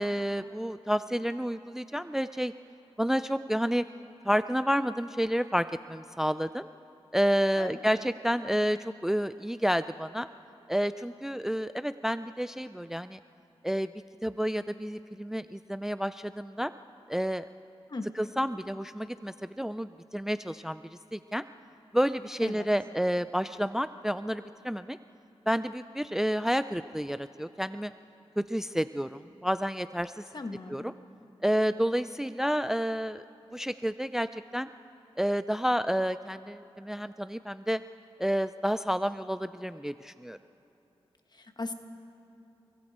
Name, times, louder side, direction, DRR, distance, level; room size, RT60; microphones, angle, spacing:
voice 1, 0.0-2.5 3.0-3.8 4.2-6.7 7.1-10.3 10.7-13.2 13.6-13.9 14.2-16.7 17.1-17.5 18.2-20.8 21.1-21.4 21.9-25.0 25.5-27.9 28.4-30.2 30.7-30.9 31.4-33.2 33.5-34.7 35.2-37.8 38.2-40.4, equal, 5° right, 13 dB, 0.4 m, -30 dB
voice 2, 30.3-30.9 41.3-41.7, left 2 dB, 45° left, 6 dB, 1.5 m, -37 dB
28.5 x 22.5 x 4.3 m, 3.0 s
cardioid pair, 55°, 10 cm